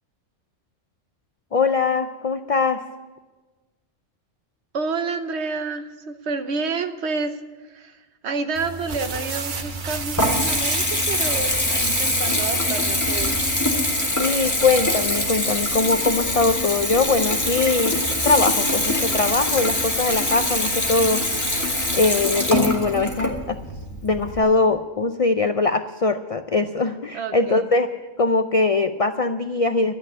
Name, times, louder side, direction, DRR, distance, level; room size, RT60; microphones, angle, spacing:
voice 1, 1.5-2.8 14.2-21.2 21.9-23.6 24.0-29.9, left 3 dB, 55° left, 9 dB, 0.3 m, -22 dB
voice 2, 4.7-8.0 8.2-13.4 27.1-27.7, right 4 dB, 60° right, 8 dB, 1.2 m, -29 dB
sound 1, 8.5-13.9, right 4 dB, 45° right, 1.0 m, -32 dB
Water tap faucet / Bathtub (filling or washing) / Trickle dribble, 9.5-24.4, left 1 dB, 15° left, 1.5 m, -23 dB
13.0 x 8.8 x 9.5 m, 1.2 s
omnidirectional pair, 1.3 m